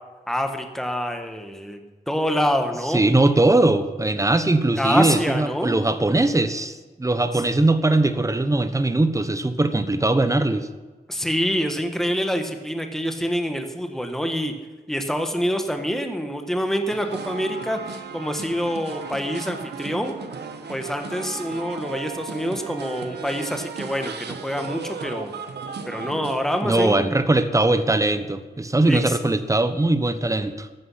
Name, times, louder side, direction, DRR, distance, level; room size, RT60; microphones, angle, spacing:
voice 1, 0.3-1.8 2.1-3.0 4.8-5.8 7.3-7.4 11.1-14.5 14.9-20.2 20.7-25.3 25.8-27.1 28.9-29.2, equal, ahead, 5 dB, 1.6 m, -26 dB
voice 2, 2.9-10.7 26.6-30.7, right 2 dB, 20° right, 10 dB, 1.2 m, -20 dB
sound 1, 16.9-26.6, right 5 dB, 85° right, 1.3 m, -35 dB
14.0 x 12.5 x 5.8 m, 1.3 s
wide cardioid pair, 90°, 17 cm